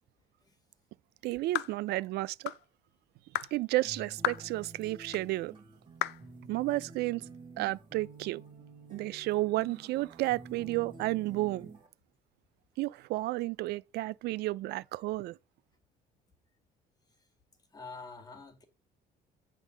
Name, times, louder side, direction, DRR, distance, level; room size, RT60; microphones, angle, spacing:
voice 1, 1.2-2.5 3.5-5.5 6.5-7.2 7.6-8.4 8.9-11.7 12.8-15.4, right 18 dB, 75° right, 0.4 m, -32 dB
sound 1, 1.5-1.8 2.5-2.6 3.3-3.5 4.2-4.5 5.1-5.2 6.0-6.2, left 16 dB, 75° left, 0.4 m, -32 dB
sound 2, 3.8-11.9, right 3 dB, 25° right, 2.8 m, -50 dB
voice 2, 17.7-18.6, left 4 dB, 20° left, 1.9 m, -46 dB
9.0 x 3.7 x 6.1 m
cardioid pair, 110°, 17 cm